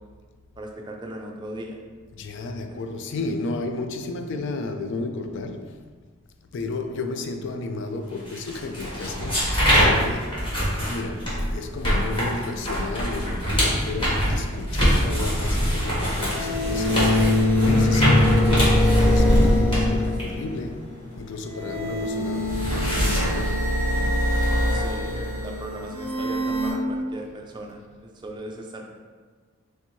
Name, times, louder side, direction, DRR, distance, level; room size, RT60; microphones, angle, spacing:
voice 1, 0.6-1.8 2.7-2.8 24.7-28.8, right 1 dB, 20° right, 0.4 m, -38 dB
voice 2, 2.1-5.9 6.5-24.4, left 3 dB, 55° left, 0.4 m, -33 dB
sound 1, 8.3-21.8 22.1-24.8, equal, 25° left, 1.3 m, -24 dB
sound 2, 14.0-14.1 16.2-20.6 21.5-26.7, left 1 dB, 5° right, 1.4 m, -23 dB
3.4 x 2.8 x 4.4 m
head